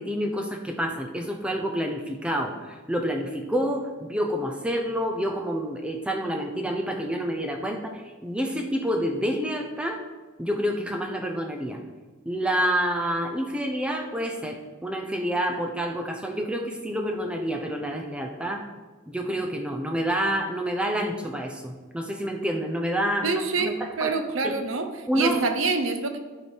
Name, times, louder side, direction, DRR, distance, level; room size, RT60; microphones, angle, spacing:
voice 1, 0.0-10.0 10.4-11.8 12.3-18.6 19.1-24.1 24.4-24.5 25.1-25.4, equal, 5° right, 3 dB, 0.7 m, -28 dB
voice 2, 23.2-24.9 25.1-26.2, right 4 dB, 70° right, 7 dB, 0.8 m, -26 dB
11.0 x 5.0 x 4.5 m, 1.3 s
head